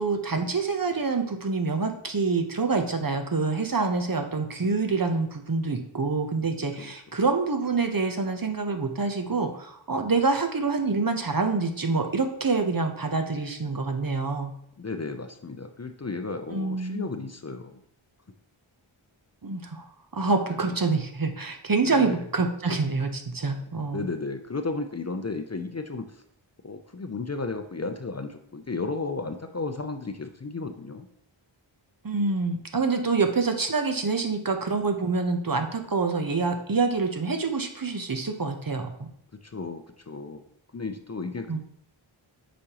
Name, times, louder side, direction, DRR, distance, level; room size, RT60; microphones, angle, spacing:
voice 1, 0.0-14.5 16.5-17.1 19.4-19.8 20.1-24.1 32.0-39.1 41.5-41.6, right 4 dB, 45° right, 6 dB, 0.8 m, -26 dB
voice 2, 14.8-17.8 20.5-20.8 21.8-22.3 23.9-26.2 26.6-31.1 39.4-40.4 40.7-41.6, left 3 dB, 35° left, 6 dB, 0.5 m, -34 dB
8.6 x 5.2 x 2.9 m, 0.70 s
wide cardioid pair, 55°, 49 cm